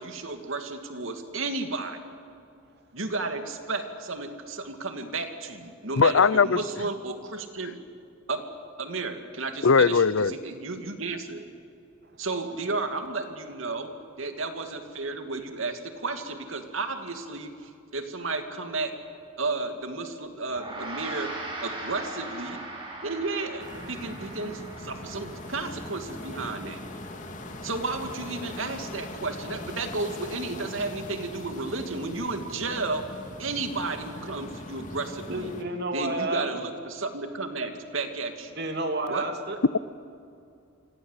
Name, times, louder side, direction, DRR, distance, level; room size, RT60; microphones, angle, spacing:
voice 1, 0.0-2.0 2.9-7.8 8.3-8.4 8.8-11.5 12.2-13.9 14.2-18.9 19.4-21.3 21.6-22.6 23.0-26.8 27.6-33.0 33.4-35.5 35.9-38.5 39.1-39.3, right 3 dB, 75° right, 6 dB, 2.6 m, -33 dB
voice 2, 6.0-6.6 9.6-10.3, left 5 dB, 75° left, 19 dB, 0.6 m, -19 dB
Gong, 20.5-30.1, right 2 dB, 25° right, 6.2 m, -41 dB
sound 1, 23.6-35.6, left 1 dB, 35° left, 2.5 m, -41 dB
voice 3, 35.3-36.5 38.6-39.6, right 2 dB, 50° right, 5 dB, 2.9 m, -30 dB
28.5 x 25.0 x 8.3 m, 2.5 s
head